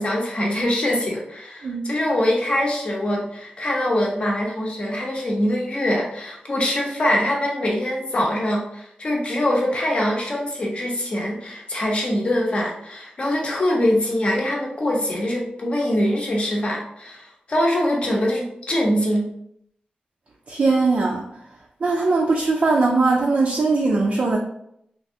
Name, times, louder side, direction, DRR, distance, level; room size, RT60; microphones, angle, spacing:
voice 1, 0.0-19.3, left 1 dB, 40° left, -2 dB, 0.7 m, -23 dB
voice 2, 20.5-21.3 21.8-24.4, right 3 dB, 50° right, -2 dB, 0.4 m, -20 dB
3.3 x 2.5 x 2.6 m, 0.74 s
wide cardioid pair, 160°, 3 cm